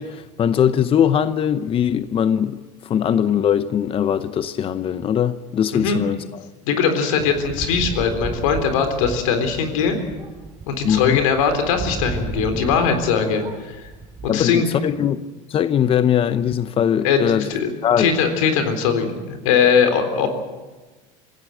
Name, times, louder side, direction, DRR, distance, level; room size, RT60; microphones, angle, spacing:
voice 1, 0.0-6.5 10.8-11.2 14.3-15.2 15.5-17.5 17.8-18.1, left 9 dB, 35° left, 0.8 m, -20 dB
voice 2, 6.7-10.0 10.7-13.8 14.2-14.7 17.0-17.7 18.0-20.3, left 6 dB, 85° left, 3.8 m, -20 dB
sound 1, 7.2-13.1 13.4-14.3, right 3 dB, 25° right, 7.0 m, -33 dB
26.0 x 16.0 x 7.9 m
supercardioid pair, 110°, 16 cm